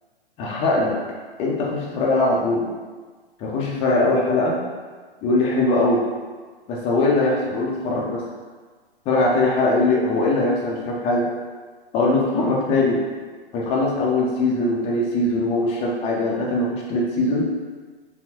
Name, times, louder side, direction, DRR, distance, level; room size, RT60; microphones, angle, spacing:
voice 1, 0.4-0.9 1.4-2.6 3.4-4.6 5.2-6.0 6.7-8.2 9.1-11.3 11.9-13.0 13.5-17.5, left 2 dB, 20° left, -2 dB, 0.7 m, -21 dB
4.3 x 3.6 x 2.9 m, 1.4 s
figure-of-eight pair, 125°, 31 cm